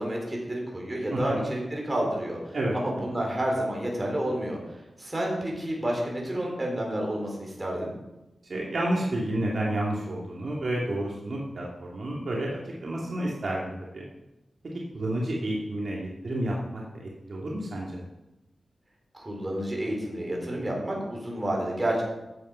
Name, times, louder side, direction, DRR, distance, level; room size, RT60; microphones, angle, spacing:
voice 1, 0.0-2.4 2.7-4.6 5.0-7.9 19.1-22.0, right 1 dB, 20° right, -1 dB, 4.1 m, -30 dB
voice 2, 1.1-1.5 2.5-2.8 8.5-14.0 14.9-18.0, right 1 dB, 55° right, -4 dB, 2.3 m, -30 dB
14.0 x 8.6 x 5.6 m, 0.98 s
wide cardioid pair, 150°, 0 cm